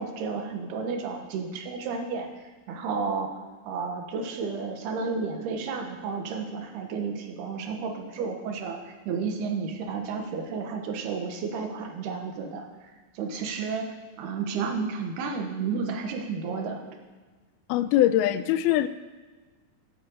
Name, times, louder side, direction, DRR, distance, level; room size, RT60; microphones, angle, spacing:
voice 1, 0.0-3.4 3.6-12.9 13.1-13.9 14.2-16.8, right 5 dB, 90° right, 4 dB, 3.4 m, -32 dB
voice 2, 17.7-18.9, left 12 dB, 85° left, 13 dB, 2.4 m, -22 dB
10.5 x 8.8 x 8.1 m, 1.3 s
omnidirectional pair, 4.5 m